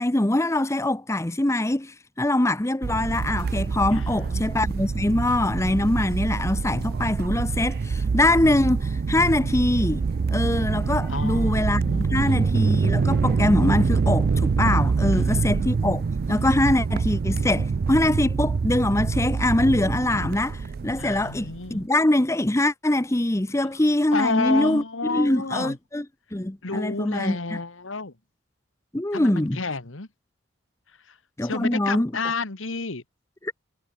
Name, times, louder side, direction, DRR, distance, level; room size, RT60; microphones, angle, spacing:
voice 1, 0.0-10.0 10.3-11.8 12.1-16.0 16.3-24.8 25.1-26.0 26.3-27.6 28.9-29.6 31.4-32.1, left 1 dB, 15° left, 0.7 m, -23 dB
sound 1, 2.8-21.8, right 4 dB, 50° right, 0.4 m, -25 dB
voice 2, 3.9-4.4 11.1-12.6 15.1-15.7 21.0-21.8 23.6-23.7 24.1-25.8 26.6-28.1 29.1-30.1 31.0-33.0, left 3 dB, 85° left, 1.8 m, -31 dB
head